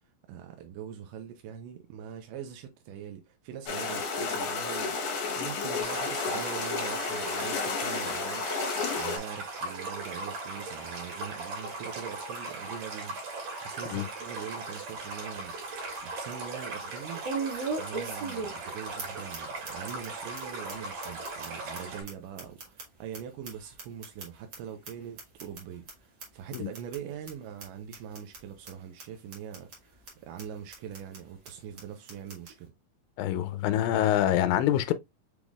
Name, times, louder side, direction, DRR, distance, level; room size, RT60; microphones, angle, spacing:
voice 1, 0.3-15.6 16.0-17.2 17.8-32.7, right 9 dB, 80° right, 2.0 m, -43 dB
sound 1, 3.7-9.2, left 4 dB, 60° left, 2.4 m, -31 dB
Stream, 5.8-22.0, right 3 dB, 60° right, 3.3 m, -38 dB
sound 2, 14.9-15.0 15.4-15.5 17.2-18.7 19.0-19.1 19.3-19.4 19.6-20.1 20.3-20.4 20.7-20.8 21.0-23.2 23.4-24.6 24.8-24.9 25.2-25.6 25.9-26.0 26.2-26.3 26.5-27.0 27.3-27.4 27.6-27.7 27.9-28.4 28.6-28.7 29.0-29.1 29.3-29.8 30.1-30.2 30.4-30.5 30.7-31.2 31.4-31.5 31.8-31.9 32.1-32.5, right 4 dB, 40° right, 1.8 m, -37 dB
voice 2, 33.2-34.9, left 12 dB, 80° left, 2.2 m, -25 dB
6.1 x 3.6 x 2.3 m
omnidirectional pair, 4.2 m